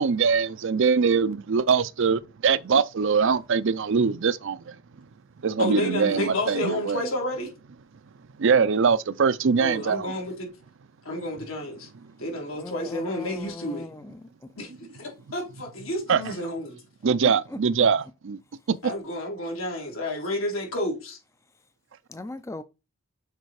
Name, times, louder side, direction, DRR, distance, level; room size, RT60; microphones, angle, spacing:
voice 1, 0.0-4.7 5.4-7.0 8.4-10.1 16.1-16.2 17.0-18.4 18.7-18.8, right 5 dB, 65° right, 0.5 m, -22 dB
voice 2, 5.6-7.5 9.6-10.5 11.0-11.9 12.2-13.9 14.6-16.8 18.8-21.2, left 1 dB, 85° left, 3.4 m, -30 dB
voice 3, 12.6-14.2 17.2-17.3 17.8-17.9 22.1-22.6, left 2 dB, 15° left, 0.4 m, -38 dB
6.7 x 4.4 x 4.7 m
head